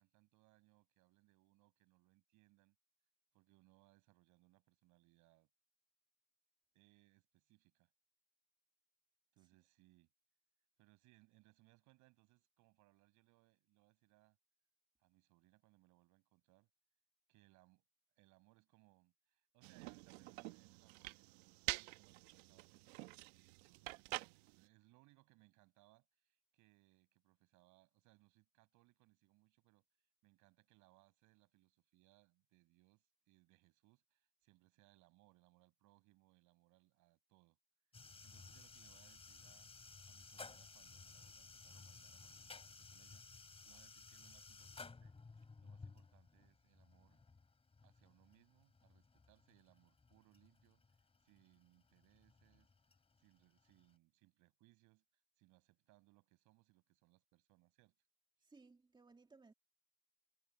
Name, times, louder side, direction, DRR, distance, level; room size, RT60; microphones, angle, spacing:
voice 1, 0.0-2.8 3.3-5.5 6.7-7.9 9.3-10.1 10.8-14.4 15.0-16.7 17.3-17.8 18.2-21.3 21.7-23.0 23.4-29.9 30.2-37.6 38.0-39.7 40.1-43.2 43.6-47.2 47.8-52.7 53.2-58.0, right 21 dB, 65° right, 7.9 m, -72 dB
sound 1, 19.6-24.6, right 22 dB, 85° right, 1.2 m, -48 dB
sound 2, 37.9-53.9, left 4 dB, 20° left, 3.5 m, -58 dB
voice 2, 58.4-59.5, right 3 dB, 15° right, 2.6 m, -63 dB
supercardioid pair, 105°, 32 cm